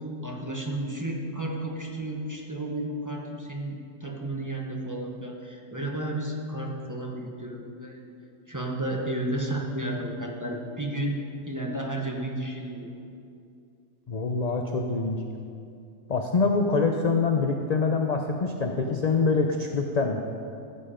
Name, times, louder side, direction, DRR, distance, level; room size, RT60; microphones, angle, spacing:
voice 1, 0.2-8.0 8.5-12.9, right 1 dB, 15° right, -1 dB, 1.0 m, -32 dB
voice 2, 14.1-15.2 16.1-20.2, left 4 dB, 45° left, 3 dB, 0.5 m, -25 dB
15.0 x 7.8 x 5.1 m, 2.5 s
omnidirectional pair, 1.5 m